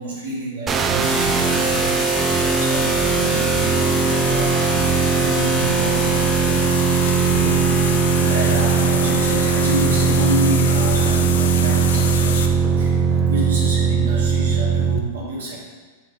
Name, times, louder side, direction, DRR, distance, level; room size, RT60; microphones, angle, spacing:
voice 1, 0.0-4.6 5.0-6.2 7.2-7.3 8.1-12.5 12.8-15.6, right 2 dB, 90° right, -5 dB, 1.1 m, -29 dB
sound 1, 0.7-15.0, right 5 dB, 25° right, 0.3 m, -19 dB
sound 2, 1.0-12.5, left 7 dB, 75° left, 0.4 m, -28 dB
sound 3, 2.9-3.6 3.8-4.1 4.4-12.3 12.6-13.0, left 1 dB, 15° left, 1.3 m, -34 dB
3.3 x 3.2 x 4.8 m, 1.4 s
hypercardioid pair, 115°, 0 cm